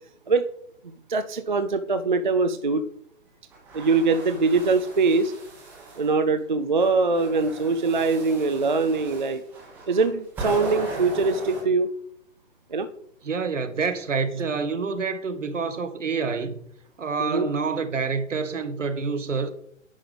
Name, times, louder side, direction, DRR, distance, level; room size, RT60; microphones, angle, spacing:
voice 1, 1.1-2.8 3.7-5.3 6.0-9.4 9.9-11.9 12.7-12.9 17.2-17.5, right 4 dB, 40° right, 0.4 m, -22 dB
sound 1, 3.5-6.1 6.7-11.6, right 3 dB, 5° right, 1.0 m, -38 dB
voice 2, 13.2-16.6 17.0-19.5, right 5 dB, 65° right, 1.1 m, -27 dB
10.0 x 3.5 x 5.3 m
figure-of-eight pair, 135°, 39 cm